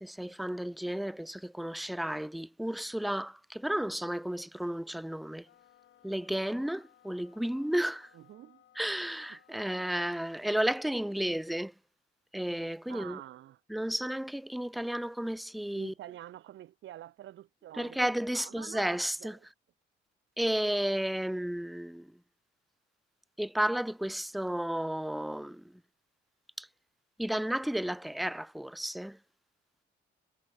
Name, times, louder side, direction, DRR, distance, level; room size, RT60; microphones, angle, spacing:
voice 1, 0.0-5.5 6.0-8.1 8.8-11.7 12.3-13.2 13.7-15.9 17.8-19.4 20.4-22.1 23.4-25.6 26.6-26.7 27.2-29.2, right 1 dB, ahead, 0.4 m, -33 dB
sound 1, 5.4-10.1, left 11 dB, 70° left, 5.5 m, -63 dB
voice 2, 8.1-8.6 9.3-9.6 12.9-13.6 15.7-18.0 18.3-19.5, right 13 dB, 75° right, 1.2 m, -48 dB
cardioid pair, 90°, 20 cm